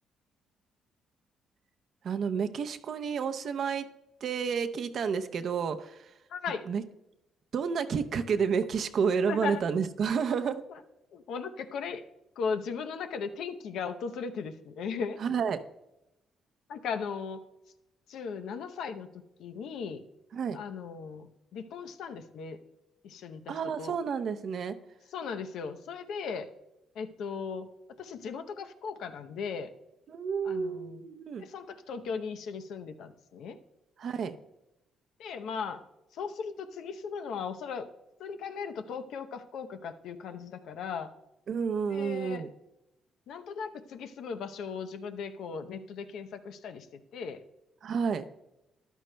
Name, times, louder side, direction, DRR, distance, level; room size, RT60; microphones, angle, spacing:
voice 1, 2.0-3.8 4.2-6.1 6.7-6.8 7.5-10.6 15.2-15.6 20.3-20.6 23.5-24.8 30.1-31.4 34.0-34.4 41.5-42.5 47.8-48.2, right 6 dB, 60° right, 10 dB, 0.6 m, -30 dB
voice 2, 6.3-6.7 9.3-9.6 10.7-10.8 11.1-12.0 12.4-15.2 16.7-17.4 18.1-19.1 19.4-20.0 20.5-22.6 23.0-23.9 25.1-26.5 26.9-27.7 28.0-29.7 30.4-31.0 31.4-33.6 35.2-35.9 36.1-37.9 38.2-41.1 41.9-42.5 43.3-47.4, left 6 dB, 80° left, 8 dB, 0.7 m, -37 dB
13.5 x 11.0 x 2.2 m, 0.93 s
cardioid pair, 90°, 0 cm